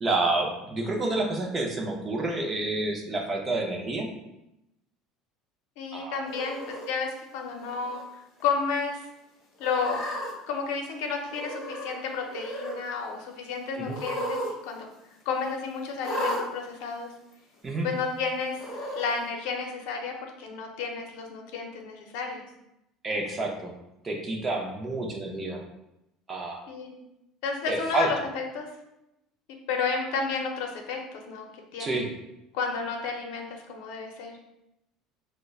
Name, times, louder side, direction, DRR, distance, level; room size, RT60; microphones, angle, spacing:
voice 1, 0.0-4.1 5.9-6.2 13.8-14.0 17.6-17.9 23.0-23.7 24.0-25.6 26.3-26.6 27.7-28.1 31.8-32.1, right 2 dB, 20° right, 1 dB, 0.4 m, -29 dB
voice 2, 5.8-8.0 8.4-9.1 9.6-10.0 10.5-14.9 15.3-17.1 17.8-18.7 19.0-22.4 26.7-27.0 27.4-28.7 29.7-31.5 31.7-32.0 32.5-34.3, left 5 dB, 75° left, 2 dB, 0.6 m, -31 dB
Cat, 6.3-6.9 7.6-8.0 8.4-8.5 9.6-10.3 11.3-12.0 12.2-12.8 13.9-14.5 14.8-14.9 16.0-16.4 17.3-17.4 18.5-19.1, equal, 35° left, 1.1 m, -34 dB
5.0 x 2.1 x 2.3 m, 0.88 s
cardioid pair, 160°, 0 cm